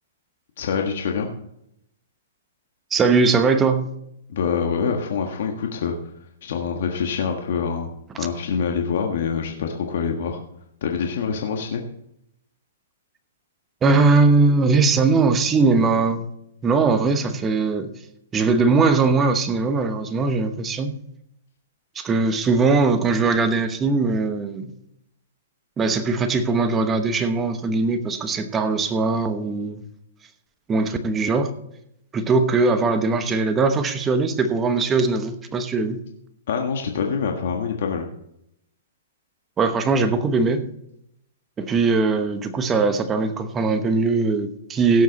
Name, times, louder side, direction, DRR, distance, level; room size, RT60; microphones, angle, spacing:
voice 1, 0.6-1.3 4.3-5.9 6.4-7.9 8.2-10.4 10.8-11.8 36.5-38.1, left 6 dB, 60° left, 2 dB, 1.6 m, -25 dB
voice 2, 2.9-3.9 13.8-16.3 16.6-17.9 18.3-21.0 21.9-24.7 25.8-29.8 30.7-31.5 32.1-36.0 39.6-40.7 41.6-45.0, right 4 dB, 15° right, 8 dB, 1.0 m, -20 dB
17.0 x 7.5 x 4.1 m, 0.77 s
hypercardioid pair, 155°, 0 cm